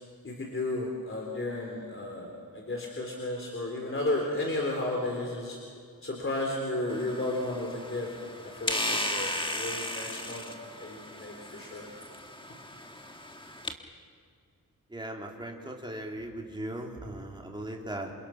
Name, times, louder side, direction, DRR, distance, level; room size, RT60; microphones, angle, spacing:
voice 1, 0.2-5.6 6.0-8.1 8.4-11.9, left 2 dB, 35° left, 0 dB, 3.7 m, -33 dB
sound 1, 6.9-13.7, left 1 dB, 15° left, 1.5 m, -36 dB
voice 2, 14.9-18.1, right 1 dB, 15° right, 0 dB, 3.1 m, -38 dB
28.0 x 27.0 x 5.9 m, 2.2 s
wide cardioid pair, 140°, 35 cm